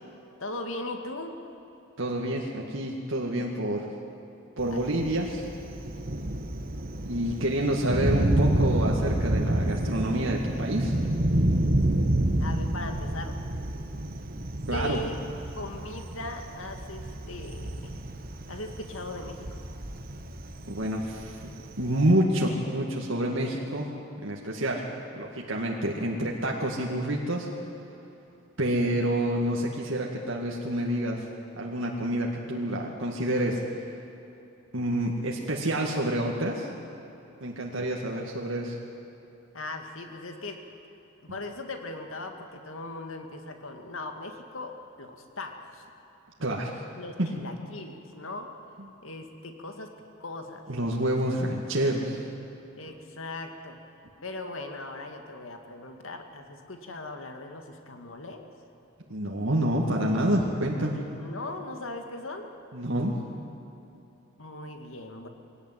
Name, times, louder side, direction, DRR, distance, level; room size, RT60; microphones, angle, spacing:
voice 1, 0.4-1.4 4.7-4.8 12.4-13.4 14.7-15.2 15.5-17.9 18.5-19.6 39.5-40.6 41.2-45.9 46.9-48.5 49.0-50.7 52.8-53.8 54.2-58.4 61.2-62.5 64.4-65.3, left 2 dB, 75° left, 5 dB, 2.1 m, -39 dB
voice 2, 2.0-3.9 4.6-5.5 7.1-10.9 14.7-15.0 20.7-21.5 21.8-23.9 24.2-24.8 25.2-27.5 28.6-31.2 31.6-33.6 34.7-36.7 37.4-38.8 46.4-46.8 47.2-47.3 50.7-52.2 59.1-61.0 62.7-63.2, right 1 dB, 70° right, -2 dB, 2.1 m, -28 dB
Thunder, 4.6-22.1, right 1 dB, 45° right, 1.3 m, -29 dB
22.0 x 17.5 x 9.3 m, 2.9 s
head